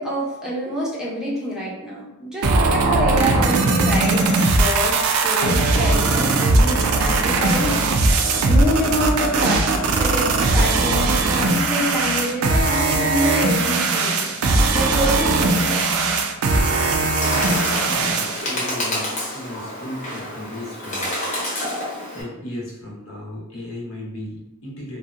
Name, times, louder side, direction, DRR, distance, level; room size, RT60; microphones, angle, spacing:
voice 1, 0.0-7.8 8.4-14.2 14.5-15.8, equal, 5° right, -6 dB, 0.5 m, -26 dB
sound 1, 2.4-18.4, right 3 dB, 85° right, 0.4 m, -19 dB
Bird, 16.6-22.2, left 1 dB, 35° left, 0.8 m, -29 dB
voice 2, 17.3-17.6 17.8-21.2 22.1-25.0, left 1 dB, 70° left, -3 dB, 0.8 m, -35 dB
2.7 x 2.1 x 2.4 m, 0.98 s
head